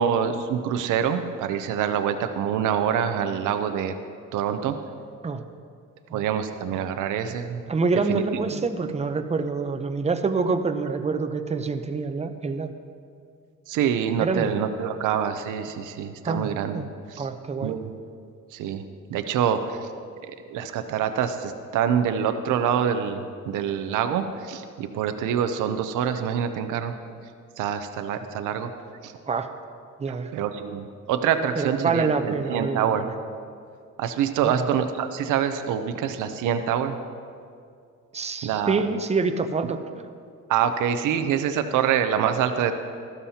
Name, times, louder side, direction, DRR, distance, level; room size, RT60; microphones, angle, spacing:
voice 1, 0.0-3.9 4.3-4.7 6.1-7.6 8.1-8.2 8.5-8.9 13.7-16.8 17.1-17.3 17.6-17.9 18.5-18.8 19.1-19.8 20.2-26.9 27.6-28.7 29.0-29.1 30.1-33.1 34.0-37.0 38.4-38.8 40.5-42.7, right 8 dB, 85° right, 8 dB, 0.7 m, -26 dB
voice 2, 7.7-12.7 14.2-14.5 16.2-16.9 17.2-17.8 29.3-29.5 30.0-30.3 31.6-33.1 34.4-34.7 38.1-39.8, right 4 dB, 20° right, 8 dB, 0.7 m, -26 dB
13.5 x 12.5 x 2.8 m, 2.3 s
cardioid pair, 90°, 30 cm